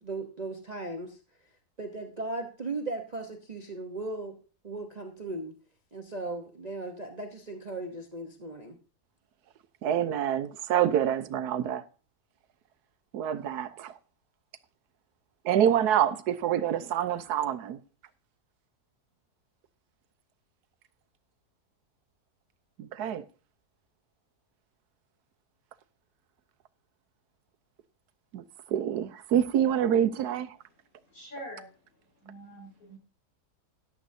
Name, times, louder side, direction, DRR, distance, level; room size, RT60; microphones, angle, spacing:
voice 1, 0.0-1.2 1.8-4.4 4.6-5.6 5.9-8.8, right 2 dB, 30° right, 1.0 m, -37 dB
voice 2, 9.8-11.8 13.1-14.0 15.4-17.8 22.8-23.2 28.3-28.4 28.7-30.6, right 10 dB, 85° right, 1.3 m, -26 dB
voice 3, 31.1-31.7 32.2-33.0, equal, 60° left, 6.2 m, -44 dB
14.0 x 11.0 x 2.7 m
omnidirectional pair, 1.6 m